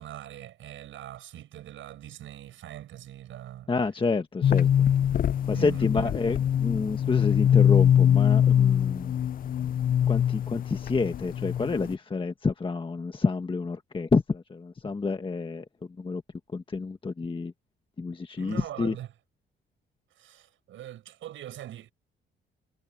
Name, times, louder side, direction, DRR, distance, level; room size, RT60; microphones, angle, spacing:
voice 1, 0.0-3.7 5.5-6.1 18.4-19.1 20.2-21.9, right 12 dB, 80° right, 7.4 m, -41 dB
voice 2, 3.7-4.7 5.5-9.2 10.1-15.6 16.0-16.2 16.5-17.5 18.0-19.0, left 4 dB, 25° left, 1.4 m, -28 dB
sound 1, 4.4-11.9, left 9 dB, 45° left, 0.5 m, -23 dB
cardioid pair, 90°, 20 cm